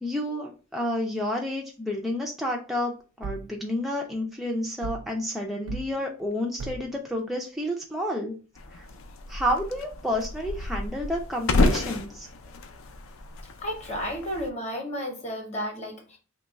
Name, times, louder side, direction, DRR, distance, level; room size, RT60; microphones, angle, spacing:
voice 1, 0.0-8.3 8.7-8.9 9.3-12.3, left 1 dB, ahead, -1 dB, 0.3 m, -30 dB
sound 1, 3.2-3.5 4.8-5.1 5.7-5.9 6.6-6.9, right 4 dB, 80° right, 0.3 m, -36 dB
sound 2, 8.5-14.5, left 2 dB, 70° left, 0.4 m, -30 dB
voice 2, 13.6-16.2, equal, 30° left, 2 dB, 0.8 m, -32 dB
3.0 x 2.2 x 4.0 m, 0.36 s
head